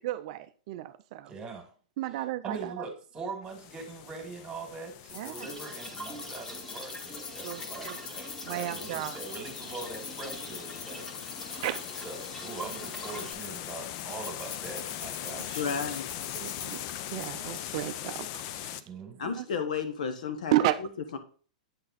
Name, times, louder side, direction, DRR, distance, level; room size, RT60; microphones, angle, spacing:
voice 1, 0.0-1.3 2.0-2.9 5.1-5.5 7.4-8.0 8.5-9.2 11.6-12.1 16.3-18.9 19.2-19.4 20.5-20.8, right 15 dB, 50° right, 0.4 m, -33 dB
voice 2, 1.3-1.7 2.4-11.1 11.5-11.6 12.0-15.9 18.6-19.2, right 4 dB, 20° right, 2.3 m, -42 dB
sound 1, 3.5-18.8, left 12 dB, 45° left, 0.5 m, -41 dB
sound 2, 5.1-17.3, left 6 dB, 30° left, 1.0 m, -44 dB
sound 3, 5.4-13.3, right 1 dB, 10° left, 1.5 m, -44 dB
voice 3, 15.5-16.1 19.2-20.5 21.1-21.2, left 6 dB, 70° left, 1.2 m, -32 dB
8.5 x 3.9 x 4.1 m
hypercardioid pair, 125°, 4 cm